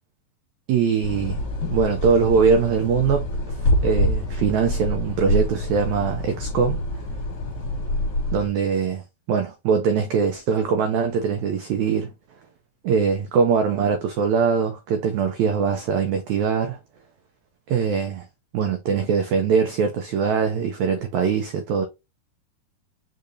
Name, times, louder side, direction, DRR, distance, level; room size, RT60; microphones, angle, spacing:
voice 1, 0.7-1.4 1.7-3.3 3.6-6.8 8.3-12.1 12.8-16.8 17.7-18.2 18.5-21.9, right 6 dB, 85° right, 1.6 m, -22 dB
sound 1, 1.0-8.5, left 1 dB, 40° left, 1.6 m, -26 dB
5.0 x 3.8 x 2.6 m
omnidirectional pair, 4.1 m